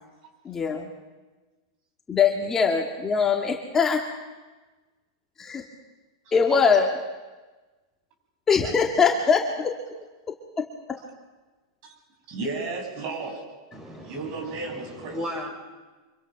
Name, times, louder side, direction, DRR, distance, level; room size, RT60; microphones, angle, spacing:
voice 1, 0.4-0.9 2.1-4.1 5.4-5.6 6.3-7.0 8.5-9.8, left 5 dB, 20° left, 1 dB, 2.2 m, -22 dB
voice 2, 12.3-13.4 14.0-15.2, right 3 dB, 45° right, 2 dB, 7.4 m, -33 dB
voice 3, 13.7-15.5, equal, 25° right, 2 dB, 7.4 m, -36 dB
25.5 x 23.5 x 6.1 m, 1.2 s
hypercardioid pair, 130°, 2 cm